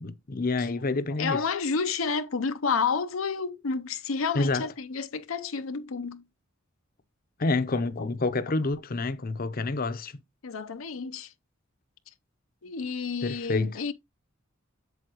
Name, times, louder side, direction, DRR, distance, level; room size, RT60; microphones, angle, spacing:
voice 1, 0.0-1.4 4.3-4.7 7.4-10.1 13.2-13.8, left 3 dB, 45° left, 0.7 m, -28 dB
voice 2, 1.2-6.2 10.4-11.3 12.6-13.9, left 5 dB, 85° left, 0.7 m, -30 dB
8.2 x 7.0 x 3.0 m
head